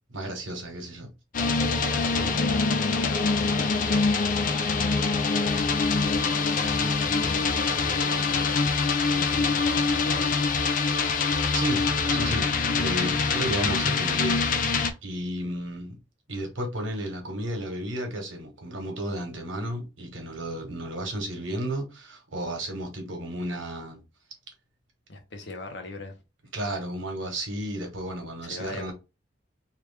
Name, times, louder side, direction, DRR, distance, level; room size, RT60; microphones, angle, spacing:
voice 1, 0.1-1.1 11.5-16.0 16.3-24.0 26.5-28.9, right 1 dB, 80° right, 1.2 m, -33 dB
sound 1, 1.3-14.9, left 4 dB, 45° left, 0.4 m, -24 dB
voice 2, 1.8-4.1 6.0-10.5 25.1-26.2 28.4-28.9, left 2 dB, 60° left, 0.8 m, -39 dB
3.0 x 2.4 x 3.3 m
head